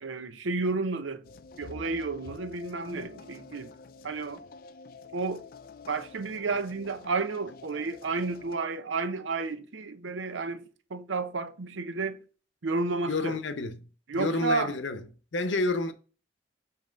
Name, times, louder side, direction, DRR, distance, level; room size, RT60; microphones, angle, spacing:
voice 1, 0.0-1.2 1.6-3.7 4.0-4.4 5.1-5.4 5.9-12.2 12.6-13.4 14.1-14.7, right 3 dB, 75° right, 0.7 m, -31 dB
sound 1, 1.2-8.6, left 4 dB, 45° left, 0.4 m, -48 dB
voice 2, 13.1-13.8 14.1-15.0 15.3-15.9, left 2 dB, 70° left, 0.8 m, -29 dB
7.4 x 2.9 x 5.1 m
head